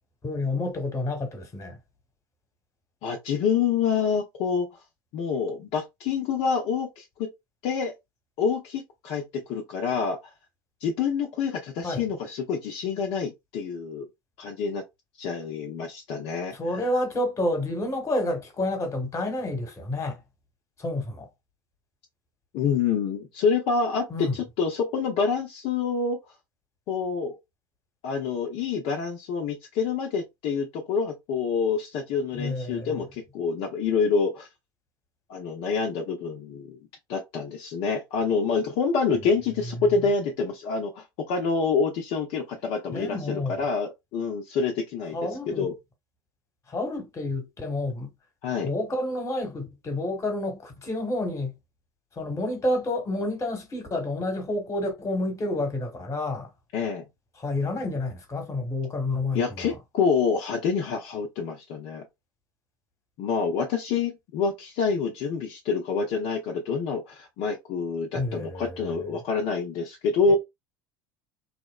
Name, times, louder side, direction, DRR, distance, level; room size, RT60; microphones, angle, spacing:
voice 1, 0.2-1.8 11.8-12.0 16.5-20.2 20.8-21.3 24.1-24.4 32.3-33.0 42.9-43.7 45.1-45.7 46.7-48.1 48.6-51.5 52.2-56.5 57.4-59.7 68.2-69.2 70.3-70.4, left 2 dB, 25° left, 1.1 m, -29 dB
voice 2, 3.0-4.7 5.1-7.3 7.6-7.9 8.4-10.2 10.8-14.1 14.4-14.8 15.2-16.6 22.5-26.2 26.9-27.4 28.0-34.5 35.3-36.8 37.1-45.2 45.5-45.7 48.4-48.7 56.7-57.0 59.3-62.0 63.2-70.4, left 5 dB, 55° left, 0.6 m, -27 dB
2.8 x 2.0 x 2.2 m
hypercardioid pair, 75°, 11 cm